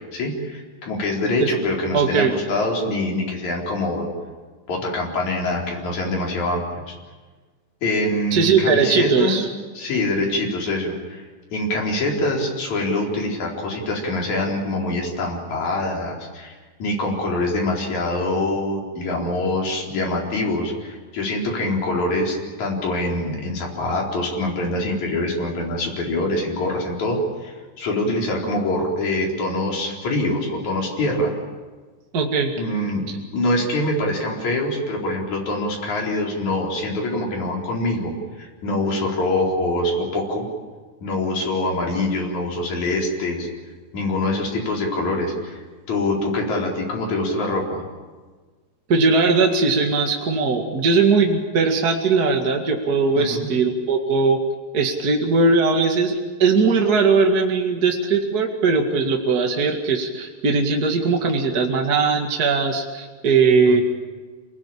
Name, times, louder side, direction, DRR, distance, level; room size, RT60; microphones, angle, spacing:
voice 1, 0.1-4.1 4.7-7.0 7.8-9.4 9.7-31.3 32.6-33.1 33.3-38.1 38.4-40.5 41.0-43.5 43.9-47.8 53.2-53.5 63.7-63.8, left 1 dB, 65° left, -2 dB, 5.6 m, -24 dB
voice 2, 1.9-2.3 8.3-9.5 32.1-32.5 48.9-54.4 54.7-63.8, right 4 dB, 35° right, 1 dB, 2.2 m, -19 dB
28.5 x 20.0 x 8.7 m, 1.4 s
omnidirectional pair, 3.6 m